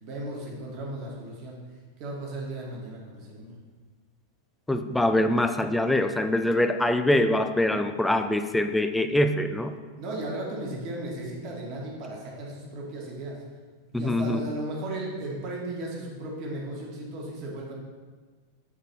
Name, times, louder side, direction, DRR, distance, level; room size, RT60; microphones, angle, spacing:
voice 1, 0.0-1.6 2.0-3.6 9.9-13.4 14.0-17.7, right 1 dB, 40° right, -2 dB, 1.5 m, -35 dB
voice 2, 4.7-9.8 13.9-14.5, left 1 dB, 5° left, 8 dB, 0.4 m, -24 dB
7.3 x 3.9 x 4.1 m, 1.4 s
figure-of-eight pair, 90°, 0 cm